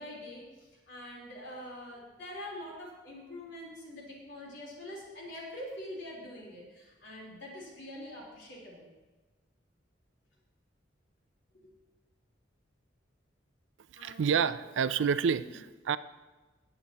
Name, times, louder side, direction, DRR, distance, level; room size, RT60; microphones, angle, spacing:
voice 1, 0.0-8.9 11.5-11.7 14.0-14.7 15.3-15.6, left 1 dB, 75° left, -3 dB, 3.7 m, -45 dB
voice 2, 13.9-16.0, right 6 dB, 80° right, 15 dB, 0.4 m, -29 dB
18.0 x 8.7 x 2.9 m, 1.2 s
head